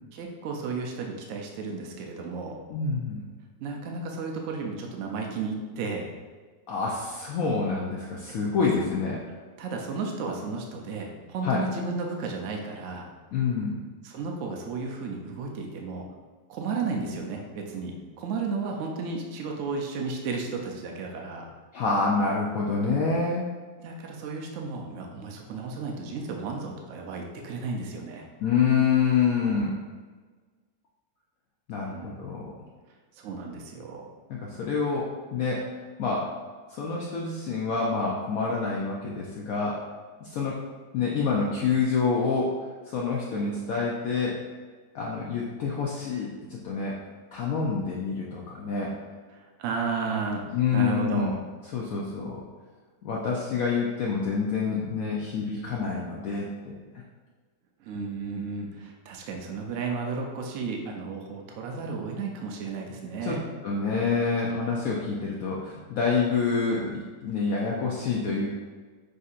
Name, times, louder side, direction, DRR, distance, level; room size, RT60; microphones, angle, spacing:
voice 1, 0.1-2.6 3.6-6.1 9.6-13.1 14.0-16.1 16.5-21.5 23.8-28.3 31.8-32.2 33.2-34.0 49.3-50.4 50.7-51.4 57.8-63.4, right 4 dB, 75° right, 1 dB, 0.7 m, -33 dB
voice 2, 2.7-3.2 6.7-9.2 11.4-11.6 13.3-13.8 21.7-23.4 28.4-29.7 31.7-32.5 34.3-35.7 36.0-36.3 36.7-39.8 40.2-40.6 40.9-42.5 42.9-44.4 44.9-47.0 47.3-48.9 50.5-51.3 51.7-52.4 53.0-56.7 63.2-63.4 63.6-68.5, left 5 dB, 70° left, -4 dB, 0.8 m, -27 dB
6.4 x 2.7 x 2.4 m, 1.4 s
omnidirectional pair, 1.9 m